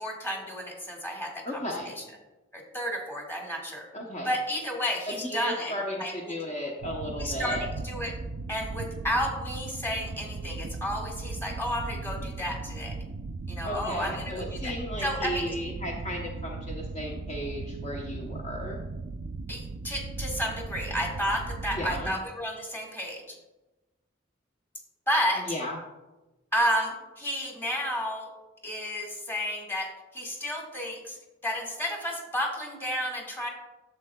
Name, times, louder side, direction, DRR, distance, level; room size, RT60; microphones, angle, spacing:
voice 1, 0.0-1.9 2.5-3.9 4.2-5.7 6.0-6.3 7.2-8.1 8.5-13.0 13.5-14.7 15.0-15.5 19.5-23.3 25.1-25.5 26.5-28.3 28.6-31.2 31.4-33.5, equal, 10° left, 0 dB, 1.6 m, -31 dB
voice 2, 1.4-1.9 3.9-4.3 5.1-7.7 13.6-18.8 21.7-22.1 25.5-25.8, equal, 35° left, -2 dB, 0.8 m, -35 dB
sound 1, 6.8-22.2, right 3 dB, 65° right, 0.4 m, -37 dB
11.0 x 7.6 x 2.2 m, 1.1 s
head